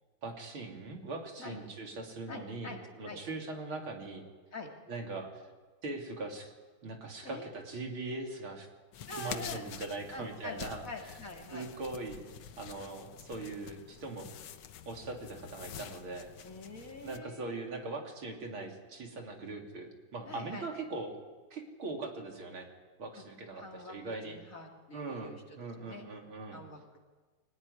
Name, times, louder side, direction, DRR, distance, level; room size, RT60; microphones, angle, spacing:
voice 1, 0.2-4.2 4.9-5.3 5.8-6.5 6.8-8.7 9.2-10.8 11.5-12.2 12.6-14.3 14.9-16.3 17.0-21.1 21.5-22.7 23.0-24.4 24.9-26.6, right 3 dB, 70° right, 1 dB, 3.9 m, -41 dB
voice 2, 2.3-2.8 3.1-3.2 4.5-4.7 7.2-7.5 9.1-9.6 10.1-11.7 16.4-17.6 20.2-20.7 23.2-23.3 23.5-26.1 26.5-27.0, left 2 dB, 40° left, 1 dB, 2.9 m, -45 dB
sound 1, 8.9-17.2, left 9 dB, 90° left, 2.0 m, -47 dB
24.5 x 17.0 x 9.9 m, 1.4 s
omnidirectional pair, 2.3 m